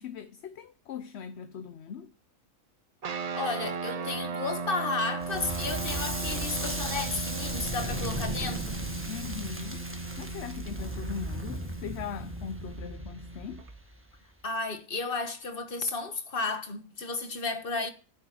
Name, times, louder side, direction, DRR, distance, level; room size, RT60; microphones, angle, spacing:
voice 1, 0.0-2.1 9.1-9.9 10.2-13.7, left 7 dB, 60° left, 0.9 m, -40 dB
sound 1, 3.0-13.7, right 4 dB, 45° right, 0.5 m, -37 dB
voice 2, 3.3-8.8 14.4-17.9, left 3 dB, 40° left, 1.6 m, -33 dB
Crackle, 5.2-14.2, right 1 dB, 10° right, 1.5 m, -36 dB
10.5 x 7.9 x 7.5 m
omnidirectional pair, 1.4 m